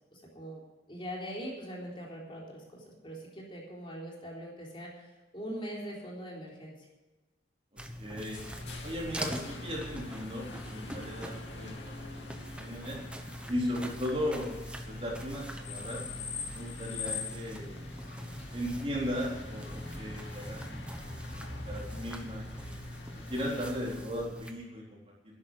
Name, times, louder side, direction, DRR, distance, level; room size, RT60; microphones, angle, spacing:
voice 1, 0.1-0.6 0.9-6.9, equal, 30° left, -3 dB, 3.8 m, -42 dB
voice 2, 7.7-8.4 8.8-13.0 13.5-14.5 14.9-16.0 16.5-17.9 18.5-21.2 21.7-22.7 23.3-25.0, equal, 30° right, -3 dB, 4.0 m, -37 dB
sound 1, 7.8-24.5, equal, 5° right, 1.1 m, -43 dB
sound 2, 8.3-24.0, left 3 dB, 90° left, 2.6 m, -44 dB
13.0 x 11.0 x 6.5 m, 1.2 s
head